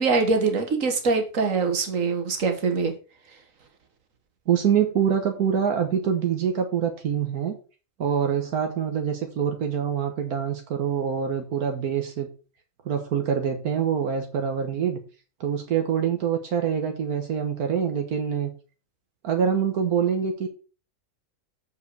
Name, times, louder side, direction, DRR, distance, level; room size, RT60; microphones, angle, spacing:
voice 1, 0.0-2.9, right 4 dB, 60° right, 4 dB, 2.0 m, -23 dB
voice 2, 4.5-7.6 8.0-12.3 12.8-15.0 15.4-18.5 19.2-20.5, right 7 dB, 80° right, 4 dB, 1.7 m, -25 dB
7.4 x 5.4 x 6.7 m, 0.35 s
omnidirectional pair, 1.5 m